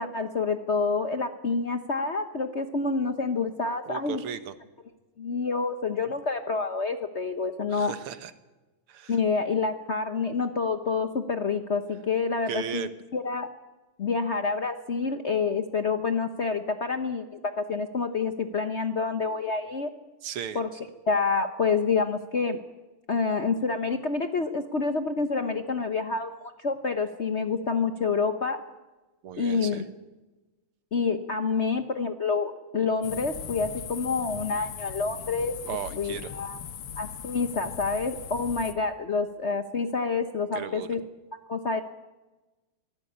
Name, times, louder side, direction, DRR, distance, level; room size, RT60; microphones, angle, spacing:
voice 1, 0.0-4.2 5.2-7.9 9.1-12.9 13.1-13.5 14.0-19.9 20.5-20.7 21.1-22.6 23.1-28.6 29.4-29.8 30.9-35.5 35.9-36.6 37.0-41.0 41.5-41.8, left 4 dB, 50° left, 8 dB, 0.9 m, -28 dB
voice 2, 3.9-4.5 7.7-8.3 8.9-9.2 12.5-12.9 20.2-20.6 29.2-29.8 35.7-36.3 40.5-40.9, right 8 dB, 85° right, 12 dB, 2.0 m, -36 dB
sound 1, 33.0-38.7, left 8 dB, 90° left, 2.0 m, -39 dB
23.5 x 15.5 x 8.6 m, 1.1 s
omnidirectional pair, 2.3 m